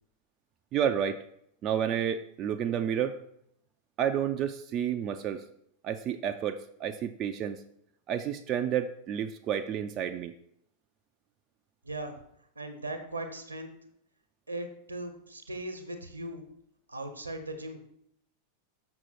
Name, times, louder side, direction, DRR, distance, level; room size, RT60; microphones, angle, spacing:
voice 1, 0.7-1.2 1.6-3.2 4.0-5.4 5.8-7.6 8.1-10.3, right 9 dB, 35° right, 7 dB, 0.4 m, -30 dB
voice 2, 11.8-12.2 12.5-13.7 14.5-16.4 16.9-17.9, right 1 dB, 80° right, 7 dB, 1.0 m, -38 dB
6.4 x 6.0 x 4.5 m, 0.72 s
figure-of-eight pair, 90°, 0 cm